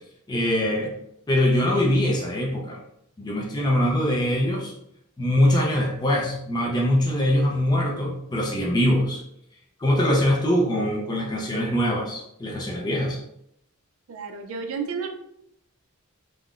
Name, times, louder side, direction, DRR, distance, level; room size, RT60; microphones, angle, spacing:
voice 1, 0.3-0.9 1.3-2.8 3.2-4.7 5.2-9.2 9.8-13.2, left 1 dB, 20° left, -2 dB, 0.4 m, -23 dB
voice 2, 14.1-15.1, right 5 dB, 65° right, 5 dB, 0.4 m, -31 dB
3.6 x 2.1 x 2.4 m, 0.75 s
head